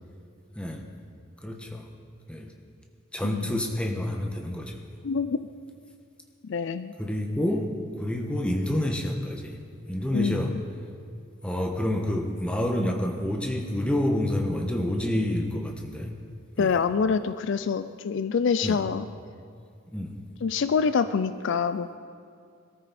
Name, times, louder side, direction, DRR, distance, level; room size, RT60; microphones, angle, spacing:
voice 1, 1.4-1.9 2.3-2.5 3.1-4.8 7.0-7.7 8.0-9.6 9.9-10.5 11.4-16.1 16.6-16.8 18.6-18.8 19.9-20.2, left 1 dB, 5° left, 2 dB, 1.2 m, -28 dB
voice 2, 3.2-3.6 5.0-5.4 6.4-6.9 10.1-10.6 16.6-19.1 20.4-21.9, left 5 dB, 55° left, 12 dB, 0.4 m, -26 dB
21.5 x 13.5 x 4.2 m, 2.3 s
head